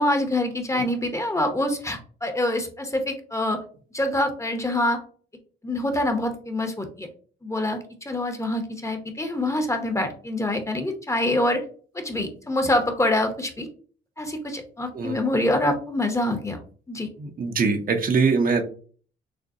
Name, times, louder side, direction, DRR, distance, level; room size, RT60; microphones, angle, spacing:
voice 1, 0.0-3.6 3.9-5.0 5.6-7.1 7.4-11.6 11.9-13.7 14.2-16.6 16.9-17.1, left 1 dB, 15° left, 6 dB, 0.8 m, -25 dB
voice 2, 17.2-18.6, right 4 dB, 45° right, 5 dB, 0.8 m, -22 dB
6.4 x 2.2 x 2.6 m, 0.43 s
cardioid pair, 90°, 20 cm